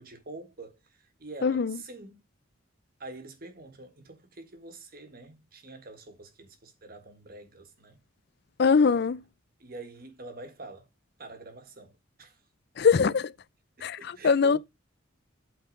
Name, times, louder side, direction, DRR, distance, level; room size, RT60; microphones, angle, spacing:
voice 1, 0.0-2.2 3.0-8.0 9.6-10.9 11.2-12.4 13.8-14.6, right 2 dB, 45° right, 1.6 m, -46 dB
voice 2, 1.4-1.8 8.6-9.2 12.8-13.3 13.8-14.6, left 5 dB, 50° left, 0.4 m, -22 dB
8.5 x 4.2 x 5.2 m
head